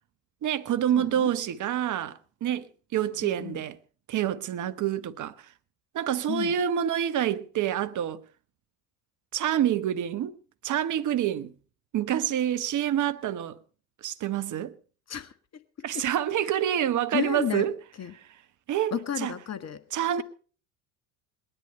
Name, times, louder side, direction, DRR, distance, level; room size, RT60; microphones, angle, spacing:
voice 1, 0.4-3.7 4.1-5.3 5.9-8.2 9.3-10.4 10.6-11.5 11.9-13.6 14.0-14.7 15.8-17.7 18.7-18.9 19.2-19.3 19.9-20.2, right 10 dB, 40° right, 1.1 m, -27 dB
voice 2, 0.9-1.3 3.2-3.6 6.3-6.6 15.1-15.6 15.9-16.1 16.4-16.5 17.1-17.7 18.0-18.1 18.9-19.8, left 9 dB, 35° left, 1.7 m, -33 dB
19.5 x 11.0 x 5.4 m
hypercardioid pair, 70°, 46 cm